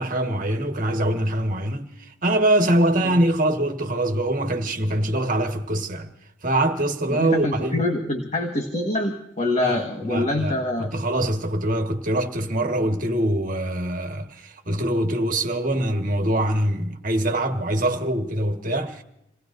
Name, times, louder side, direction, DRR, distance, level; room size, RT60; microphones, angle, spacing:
voice 1, 0.0-1.9 2.2-6.1 6.4-7.8 9.6-19.0, right 1 dB, 45° right, 1.6 m, -23 dB
voice 2, 7.1-10.9, left 2 dB, 35° left, 1.5 m, -25 dB
28.0 x 19.0 x 2.6 m
head